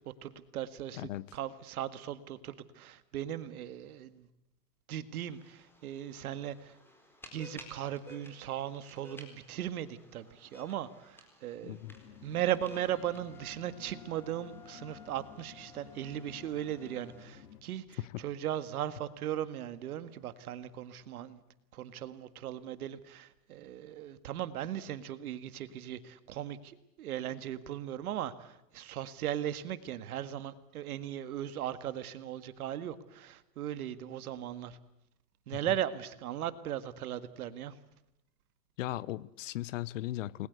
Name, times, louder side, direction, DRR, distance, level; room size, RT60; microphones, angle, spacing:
voice 1, 0.2-4.3 4.9-6.7 7.3-11.8 12.2-21.4 21.7-34.8 35.5-37.8, right 11 dB, 60° right, 1.8 m, -38 dB
voice 2, 1.0-1.3 11.6-11.9 18.0-18.2 38.8-40.5, left 15 dB, 50° left, 1.0 m, -37 dB
sound 1, 5.3-17.2, left 1 dB, 5° left, 4.3 m, -56 dB
sound 2, 11.8-17.6, left 7 dB, 70° left, 3.8 m, -54 dB
Wind instrument woodwind instrument, 12.8-17.3, left 9 dB, 35° left, 4.3 m, -57 dB
30.0 x 21.0 x 8.2 m
hypercardioid pair, 145°, 49 cm